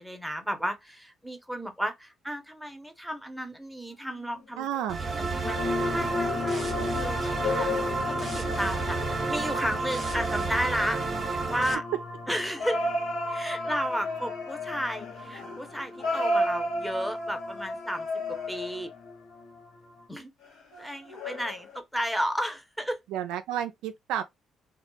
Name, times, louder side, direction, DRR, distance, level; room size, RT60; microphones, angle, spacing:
voice 1, 0.0-7.7 8.0-11.8 12.3-12.9 13.3-18.9 20.1-20.3 20.8-23.0, equal, ahead, 0.7 m, -33 dB
sound 1, 4.0-4.4 5.6-11.6 12.6-19.1 20.4-21.8, left 1 dB, 80° left, 1.1 m, -34 dB
voice 2, 4.6-5.0 23.1-24.2, right 10 dB, 80° right, 0.3 m, -31 dB
sound 2, 4.9-11.7, right 4 dB, 40° right, 0.7 m, -31 dB
sound 3, 5.4-20.0, left 1 dB, 50° left, 0.8 m, -36 dB
2.2 x 2.0 x 3.0 m
supercardioid pair, 65°, 0 cm